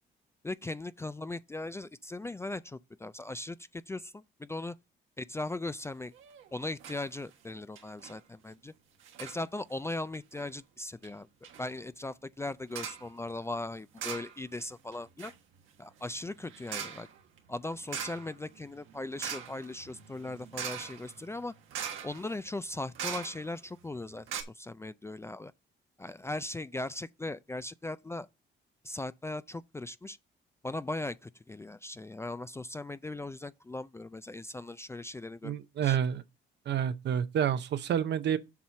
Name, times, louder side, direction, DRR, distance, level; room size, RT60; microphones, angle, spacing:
voice 1, 0.4-4.8 5.2-6.1 6.5-8.7 9.2-15.3 15.8-17.1 17.5-21.5 22.0-24.3 24.5-25.5 26.0-28.3 28.8-30.2 30.6-35.6 35.8-36.0, left 2 dB, 15° left, 0.3 m, -39 dB
sound 1, 6.1-6.5 6.8-7.0 7.3-7.4 7.8-8.2 9.0-9.4 10.1-10.5 11.0-11.1 11.4-11.7 12.7-13.1 14.0-14.7 14.9-23.7 24.0-24.1 24.3-24.4, right 8 dB, 85° right, 1.3 m, -42 dB
voice 2, 35.4-36.2 36.7-38.4, right 9 dB, 60° right, 0.7 m, -29 dB
7.4 x 4.2 x 5.6 m
cardioid pair, 90°, 20 cm